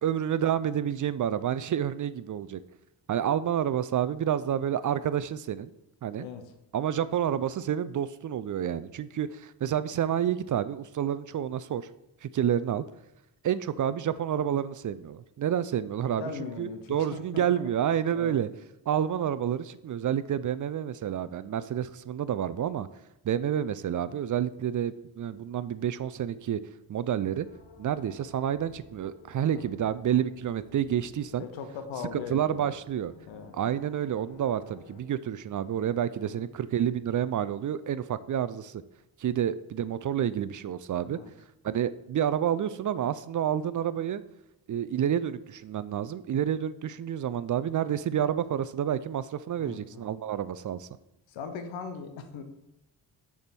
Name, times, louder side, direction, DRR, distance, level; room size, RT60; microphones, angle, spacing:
voice 1, 0.0-2.6 3.1-5.7 6.0-6.3 6.7-11.9 12.2-12.8 13.4-16.3 16.6-18.5 18.9-22.9 23.2-26.6 26.9-27.5 27.8-31.5 32.1-33.1 33.5-38.8 39.2-41.2 41.6-44.2 44.7-50.9, right 9 dB, 45° right, 15 dB, 0.4 m, -29 dB
voice 2, 6.2-6.5 16.2-17.7 18.1-18.4 29.5-29.7 31.4-32.7 33.3-33.5 36.2-36.4 41.1-41.3 49.6-50.0 51.3-52.4, left 5 dB, 85° left, 7 dB, 0.9 m, -40 dB
sound 1, 27.4-35.0, left 4 dB, 65° left, 1.2 m, -54 dB
6.5 x 3.6 x 6.0 m, 0.88 s
supercardioid pair, 45°, 45 cm